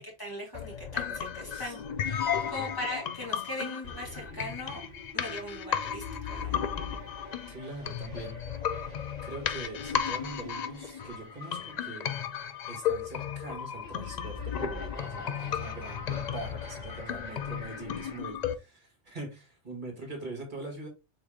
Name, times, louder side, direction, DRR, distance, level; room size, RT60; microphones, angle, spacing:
voice 1, 0.0-4.8 5.1-6.6, left 1 dB, 20° left, 2.2 m, -40 dB
sound 1, 0.5-18.5, left 8 dB, 65° left, 0.4 m, -34 dB
voice 2, 1.4-1.8 2.4-2.8 7.5-8.4 9.2-12.1 12.7-20.9, right 2 dB, 40° right, 1.9 m, -42 dB
sound 2, 2.0-18.2, left 1 dB, 40° left, 2.8 m, -49 dB
4.3 x 3.5 x 3.5 m
omnidirectional pair, 1.2 m